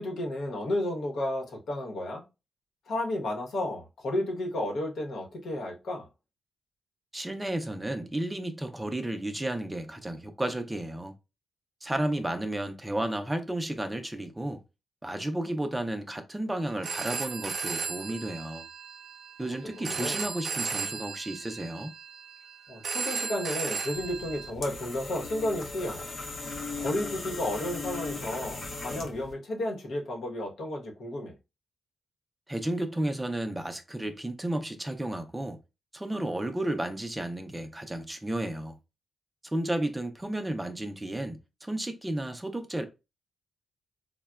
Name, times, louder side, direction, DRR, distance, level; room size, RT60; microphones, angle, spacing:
voice 1, 0.0-2.2 2.9-6.1 19.4-20.2 22.7-26.0 26.8-31.3, left 1 dB, 75° left, 0.9 m, -32 dB
voice 2, 7.1-11.1 11.8-14.6 15.0-18.6 19.4-21.9 32.5-35.6 35.9-38.8 39.5-42.9, right 1 dB, 10° right, 0.4 m, -32 dB
Telephone, 16.7-24.5, right 5 dB, 55° right, 0.6 m, -35 dB
sound 1, 23.9-29.3, left 3 dB, 50° left, 0.6 m, -38 dB
3.8 x 2.1 x 2.2 m
cardioid pair, 110°, 0 cm